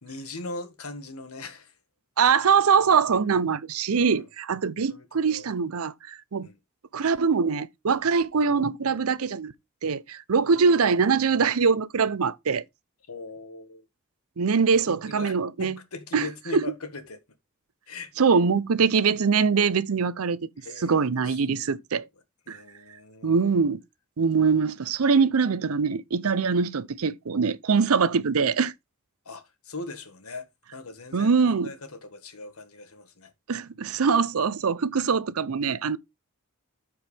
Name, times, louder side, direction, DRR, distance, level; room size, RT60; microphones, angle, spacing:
voice 1, 0.0-1.8 3.9-4.3 4.9-5.5 6.4-6.6 13.1-13.9 14.5-17.2 17.9-18.1 20.6-21.7 22.5-23.6 29.2-33.3, left 3 dB, 80° left, 1.7 m, -40 dB
voice 2, 2.2-6.5 6.9-9.5 9.8-12.6 14.4-15.8 16.1-16.3 16.5-16.6 18.2-20.5 20.8-22.1 22.5-22.6 23.2-23.8 24.2-28.7 31.1-31.7 33.5-36.0, right 5 dB, 75° right, 0.6 m, -23 dB
13.0 x 4.7 x 3.4 m
head